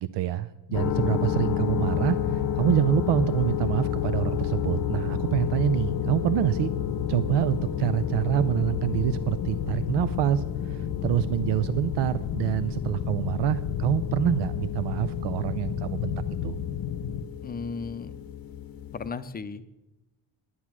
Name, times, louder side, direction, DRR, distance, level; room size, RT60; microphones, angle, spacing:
voice 1, 0.0-6.7 7.1-16.1 16.4-16.5, right 11 dB, 85° right, 12 dB, 0.6 m, -26 dB
sound 1, 0.7-17.2, left 8 dB, 85° left, 1.1 m, -33 dB
sound 2, 0.7-19.1, left 9 dB, 55° left, 0.8 m, -32 dB
voice 2, 17.4-18.2 18.9-19.6, left 5 dB, 25° left, 11 dB, 0.5 m, -35 dB
10.5 x 9.6 x 6.1 m, 0.94 s
cardioid pair, 170°, 41 cm